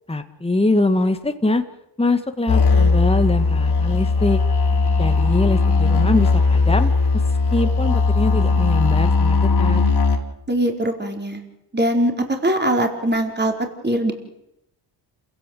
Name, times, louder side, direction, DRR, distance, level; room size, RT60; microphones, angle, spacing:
voice 1, 0.1-1.6 2.0-4.4 5.0-6.9 7.5-9.8, left 2 dB, 10° left, 8 dB, 1.9 m, -22 dB
sound 1, 2.5-10.2, left 4 dB, 55° left, 4.3 m, -18 dB
voice 2, 10.5-11.4 11.7-13.5 13.8-14.1, right 1 dB, 20° right, 3 dB, 4.5 m, -21 dB
28.0 x 16.5 x 7.9 m, 0.86 s
supercardioid pair, 60°, 49 cm